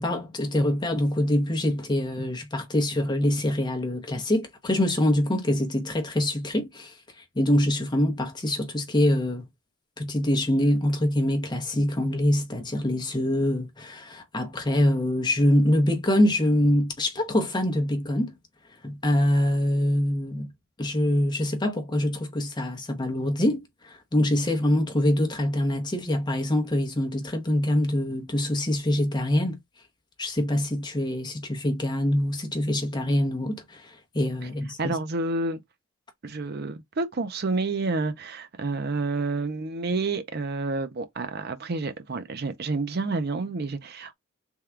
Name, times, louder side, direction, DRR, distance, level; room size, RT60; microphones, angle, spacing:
voice 1, 0.0-7.0 7.4-9.4 10.0-18.3 18.8-20.5 20.8-29.5 30.2-34.9, left 1 dB, 20° left, 0.8 m, -24 dB
voice 2, 34.8-35.6 36.2-44.1, right 3 dB, 45° right, 0.5 m, -29 dB
3.6 x 2.2 x 4.4 m
head